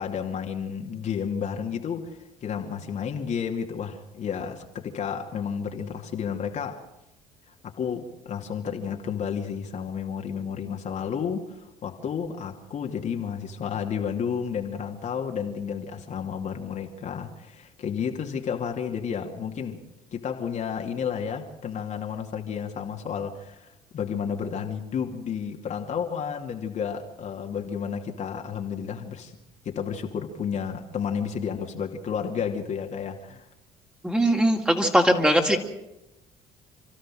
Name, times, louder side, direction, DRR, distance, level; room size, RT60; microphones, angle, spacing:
voice 1, 0.0-6.8 7.6-19.8 20.1-29.3 29.6-33.5, left 7 dB, 50° left, 2.5 m, -31 dB
voice 2, 34.0-35.6, equal, 5° right, 2.9 m, -20 dB
29.0 x 12.5 x 7.6 m
supercardioid pair, 85°, 15 cm